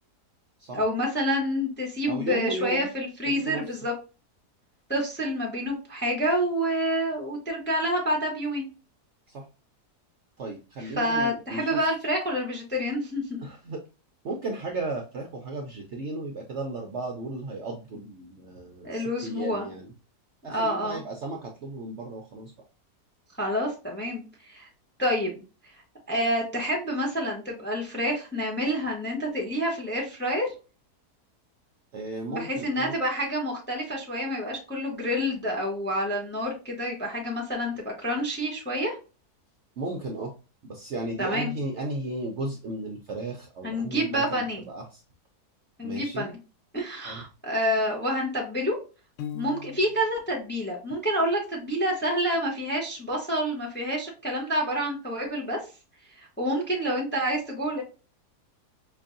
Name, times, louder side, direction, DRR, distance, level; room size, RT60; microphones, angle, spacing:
voice 1, 0.7-3.9 4.9-8.7 10.8-13.4 18.8-19.7 20.5-21.0 23.4-24.7 25.0-25.4 26.1-30.5 32.3-38.9 41.2-41.5 43.6-44.6 45.8-46.3 46.7-48.7 49.3-55.6 56.4-57.8, equal, 10° left, -1 dB, 0.7 m, -28 dB
voice 2, 2.1-2.9 3.3-3.6 9.3-9.4 10.4-11.7 13.4-13.8 14.2-19.9 20.4-22.5 31.9-32.9 39.8-40.3 40.6-45.0 45.8-46.3 47.0-47.2, right 2 dB, 60° right, 2 dB, 0.7 m, -35 dB
Piano, 49.2-50.2, left 9 dB, 70° left, 0.7 m, -38 dB
5.2 x 2.6 x 2.5 m, 0.33 s
omnidirectional pair, 1.7 m